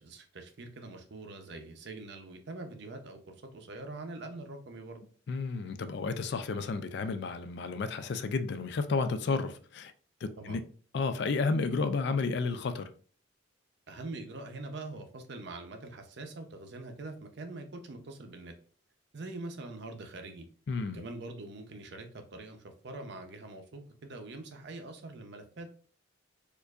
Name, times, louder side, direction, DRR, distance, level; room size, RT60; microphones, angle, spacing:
voice 1, 0.0-5.0 10.4-10.6 13.9-18.5 19.1-20.5 20.9-25.7, right 2 dB, 55° right, 0.6 m, -44 dB
voice 2, 5.3-9.9 10.2-10.6 10.9-12.9 20.7-21.0, left 4 dB, 55° left, 0.3 m, -32 dB
4.4 x 2.5 x 2.4 m
head